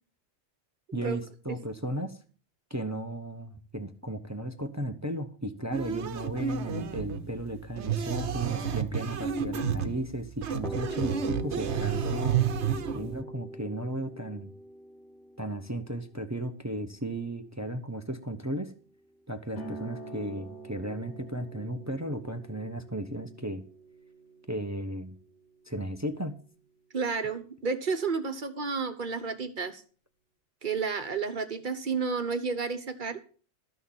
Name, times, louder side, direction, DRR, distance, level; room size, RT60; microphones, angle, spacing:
voice 1, 0.9-2.2 2.7-12.4 12.9-14.5 15.4-18.7 19.3-23.6 24.5-25.1 25.7-26.4, right 1 dB, 15° right, 7 dB, 0.8 m, -35 dB
sound 1, 5.7-13.2, right 7 dB, 75° right, 1.2 m, -31 dB
sound 2, 10.6-18.3, equal, ahead, 0.4 m, -43 dB
sound 3, 19.6-26.7, right 2 dB, 90° left, 2.5 m, -47 dB
voice 2, 26.9-29.8 30.6-33.2, right 5 dB, 45° right, 10 dB, 1.2 m, -31 dB
13.0 x 6.4 x 7.2 m, 0.41 s
omnidirectional pair, 1.2 m